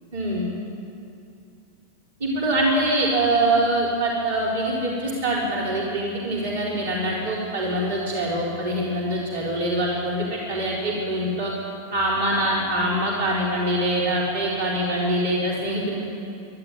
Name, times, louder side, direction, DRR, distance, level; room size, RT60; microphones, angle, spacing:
voice 1, 0.1-0.5 2.2-11.5 11.9-16.0, right 1 dB, 60° right, -4 dB, 4.5 m, -24 dB
24.0 x 12.0 x 9.5 m, 2.6 s
figure-of-eight pair, 90°, 0 cm